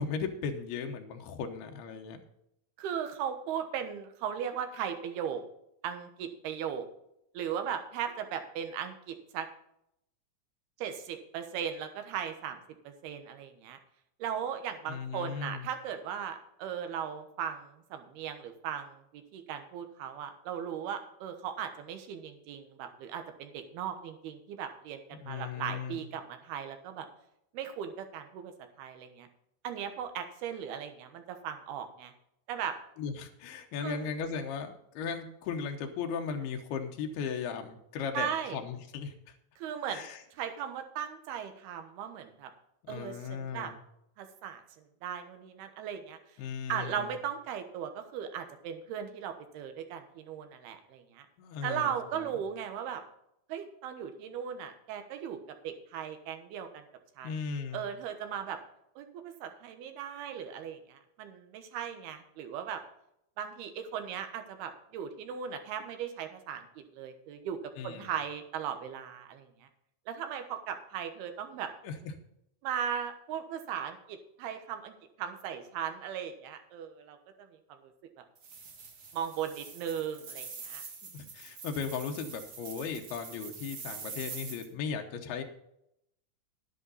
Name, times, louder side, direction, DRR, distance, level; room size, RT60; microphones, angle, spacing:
voice 1, 0.0-2.2 14.9-15.7 25.2-26.1 33.0-39.3 39.9-40.2 42.9-43.7 46.4-47.2 51.4-52.3 57.2-57.8 67.8-68.1 71.8-72.1 81.1-85.4, left 6 dB, 90° left, 4 dB, 3.0 m, -37 dB
voice 2, 2.8-5.4 5.8-6.9 7.3-9.5 10.8-13.8 14.2-27.1 27.5-28.5 28.8-29.3 29.6-32.1 32.5-32.8 33.8-34.0 38.1-38.6 39.6-42.5 42.9-43.7 44.2-46.2 46.7-51.3 51.6-53.0 53.5-56.8 57.2-57.3 57.7-58.6 59.0-62.8 63.4-67.6 67.8-69.7 70.1-71.7 72.6-78.2 79.1-80.8, right 8 dB, 85° right, 7 dB, 3.1 m, -38 dB
sound 1, 78.4-84.7, right 5 dB, 45° right, 2.3 m, -45 dB
11.0 x 10.5 x 4.1 m, 0.78 s
omnidirectional pair, 4.4 m